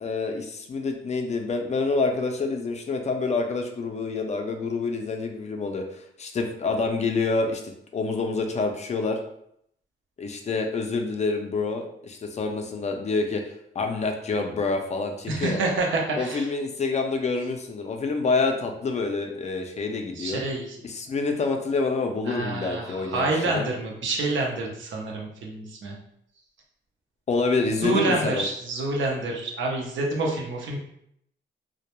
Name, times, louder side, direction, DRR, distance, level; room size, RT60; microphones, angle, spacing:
voice 1, 0.0-5.8 6.2-7.6 7.9-9.2 10.2-13.4 13.8-15.6 16.1-20.4 20.8-23.3 23.5-23.6 27.3-28.4, left 3 dB, 35° left, 4 dB, 0.3 m, -27 dB
voice 2, 15.3-16.5 20.2-20.8 22.3-26.0 27.8-30.8, right 2 dB, 80° right, 0 dB, 0.6 m, -27 dB
2.1 x 2.0 x 2.9 m, 0.73 s
cardioid pair, 115°, 19 cm